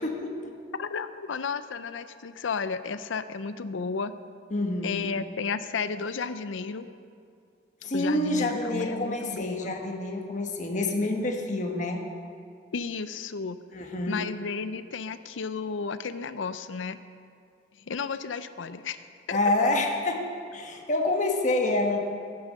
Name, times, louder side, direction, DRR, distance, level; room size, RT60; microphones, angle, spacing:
voice 1, 0.0-0.5 4.5-5.0 7.8-12.0 13.7-14.3 19.3-20.3 20.5-22.0, left 2 dB, 40° left, 3 dB, 1.2 m, -27 dB
voice 2, 0.7-4.1 4.8-6.9 7.9-9.7 12.7-13.6 14.1-17.0 17.9-19.0 19.3-19.5, left 5 dB, 85° left, 13 dB, 0.5 m, -33 dB
12.0 x 9.5 x 6.5 m, 2.3 s
head